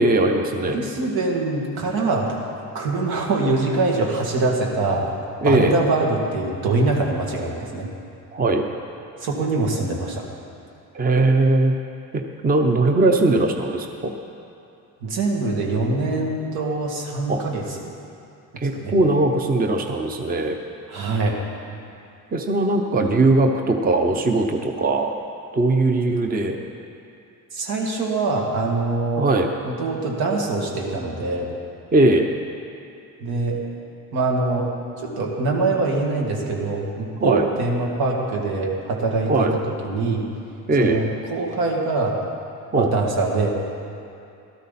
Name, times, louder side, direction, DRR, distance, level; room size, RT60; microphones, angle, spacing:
voice 1, 0.0-0.8 5.4-5.8 8.3-8.6 10.9-11.7 12.1-14.1 17.3-17.4 18.6-20.6 22.3-25.1 25.5-26.6 29.2-29.5 31.9-32.3 37.2-37.5 39.3-39.5 40.7-41.0 42.7-42.9, right 2 dB, 25° right, 4 dB, 0.7 m, -19 dB
voice 2, 0.6-2.3 2.7-5.1 5.4-7.9 9.2-10.2 15.0-17.8 18.5-18.9 20.9-21.4 27.5-29.3 29.6-31.5 33.2-33.6 34.1-34.7 35.0-40.3 40.8-42.2 42.8-43.5, right 3 dB, 85° right, -1 dB, 2.3 m, -23 dB
17.5 x 13.0 x 4.2 m, 2.6 s
cardioid pair, 150°, 36 cm